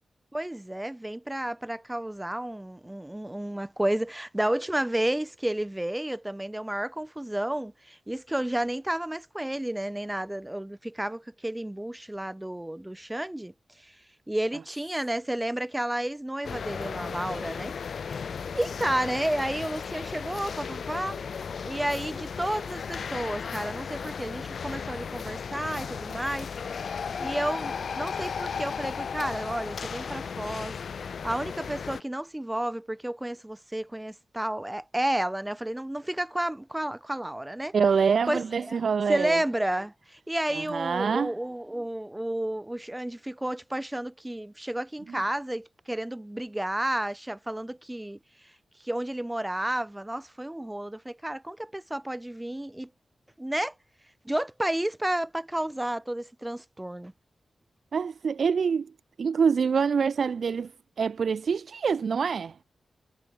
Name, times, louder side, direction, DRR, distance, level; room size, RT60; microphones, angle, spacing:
voice 1, 0.3-13.5 13.8-13.9 14.3-17.7 18.5-21.3 21.6-26.5 26.8-30.7 31.0-37.7 38.3-38.8 39.1-48.2 48.8-52.9 53.4-53.7 54.2-57.1, right 1 dB, 10° right, 0.9 m, -31 dB
sound 1, 16.4-32.0, left 6 dB, 60° left, 2.2 m, -35 dB
voice 2, 37.7-39.4 40.5-41.3 45.1-45.2 57.9-58.9 59.2-60.7 61.0-62.5, right 6 dB, 60° right, 1.4 m, -25 dB
wide cardioid pair, 135°, 0 cm